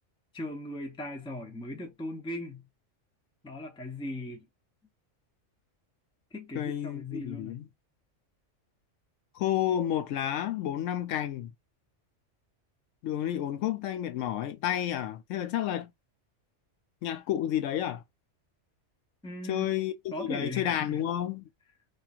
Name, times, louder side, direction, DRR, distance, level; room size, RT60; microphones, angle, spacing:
voice 1, 0.3-2.6 3.4-4.5 6.3-7.7 19.2-19.8 20.1-21.0, left 1 dB, 5° left, 0.5 m, -38 dB
voice 2, 6.5-7.7 9.3-11.5 13.0-15.9 17.0-18.0 19.5-21.5, left 11 dB, 85° left, 0.9 m, -31 dB
3.0 x 2.5 x 2.3 m
omnidirectional pair, 1.3 m